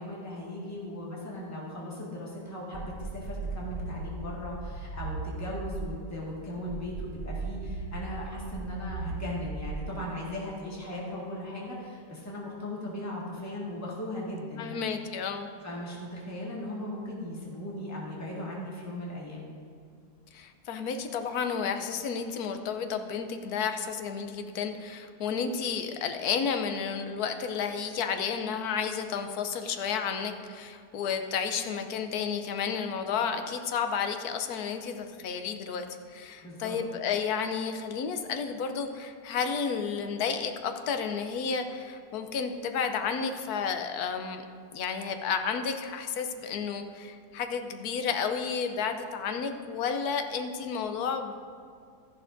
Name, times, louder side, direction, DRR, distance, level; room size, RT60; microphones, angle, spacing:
voice 1, 0.0-14.8 15.6-19.4 36.4-36.8, left 1 dB, 10° left, -5 dB, 1.7 m, -38 dB
sound 1, 2.7-6.0 6.7-10.0, right 3 dB, 15° right, 1.6 m, -37 dB
voice 2, 14.6-15.5 20.3-44.4 44.7-51.3, left 6 dB, 70° left, 7 dB, 1.2 m, -32 dB
13.5 x 11.0 x 2.6 m, 2.2 s
omnidirectional pair, 1.8 m